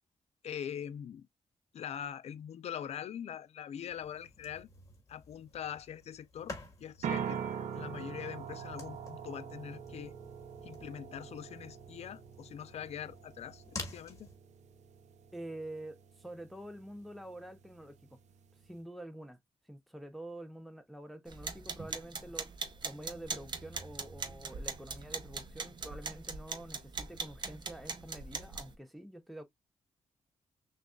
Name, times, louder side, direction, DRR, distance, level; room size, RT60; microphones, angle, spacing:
voice 1, 0.4-1.3 1.7-4.7 5.1-6.5 6.8-7.4 7.7-10.1 10.6-14.3, left 9 dB, 70° left, 0.5 m, -43 dB
sound 1, 3.9-14.4, left 2 dB, 30° left, 1.5 m, -50 dB
sound 2, 7.0-18.8, right 8 dB, 85° right, 0.6 m, -44 dB
voice 2, 15.3-18.0 18.6-19.4 19.6-29.4, right 1 dB, ahead, 0.5 m, -47 dB
sound 3, 21.3-28.7, right 4 dB, 40° right, 0.7 m, -41 dB
6.1 x 2.4 x 2.2 m
wide cardioid pair, 130°, 12 cm